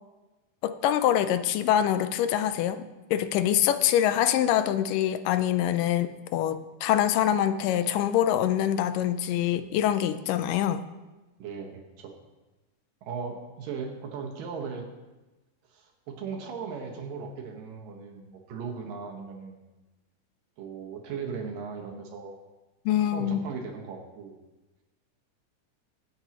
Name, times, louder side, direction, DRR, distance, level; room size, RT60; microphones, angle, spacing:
voice 1, 0.6-10.8 22.9-23.5, left 11 dB, 85° left, 11 dB, 2.3 m, -25 dB
voice 2, 11.4-12.1 13.0-14.9 15.7-19.6 20.6-22.4 23.1-24.3, right 5 dB, 85° right, 1 dB, 3.2 m, -37 dB
23.0 x 8.0 x 3.0 m, 1.1 s
omnidirectional pair, 3.8 m